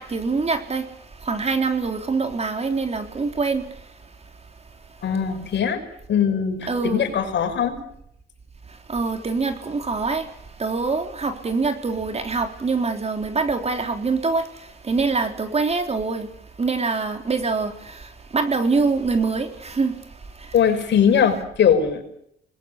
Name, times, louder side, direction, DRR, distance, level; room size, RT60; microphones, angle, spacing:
voice 1, 0.0-4.2 6.7-7.1 8.7-16.3 16.6-20.5, right 4 dB, 30° right, 3.7 m, -25 dB
voice 2, 5.0-5.8 6.1-7.8 20.5-22.0, left 8 dB, 65° left, 5.7 m, -20 dB
27.0 x 21.0 x 8.4 m
cardioid pair, 90°, 20 cm